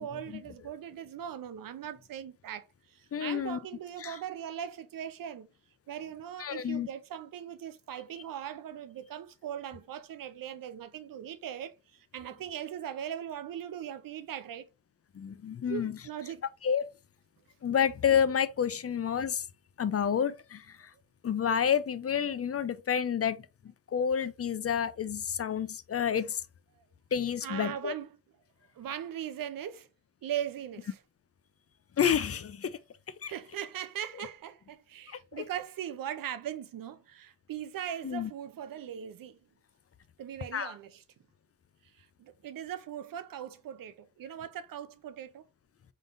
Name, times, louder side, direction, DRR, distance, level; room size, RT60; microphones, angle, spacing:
voice 1, 0.0-5.5 5.9-14.6 15.7-16.4 26.8-26.9 27.4-28.1 28.8-29.9 30.2-31.0 33.2-39.4 40.2-41.0 42.0-45.5, right 10 dB, 80° right, 0.6 m, -40 dB
voice 2, 3.1-3.6 4.0-4.2 6.4-6.9 15.1-16.0 16.6-16.9 17.6-19.5 19.8-20.9 21.2-26.4 27.1-27.9 32.0-32.8 33.2-33.3 35.1-35.4 38.0-38.3 40.5-40.7, left 8 dB, 45° left, 0.5 m, -29 dB
3.8 x 3.7 x 2.4 m
cardioid pair, 60°, 33 cm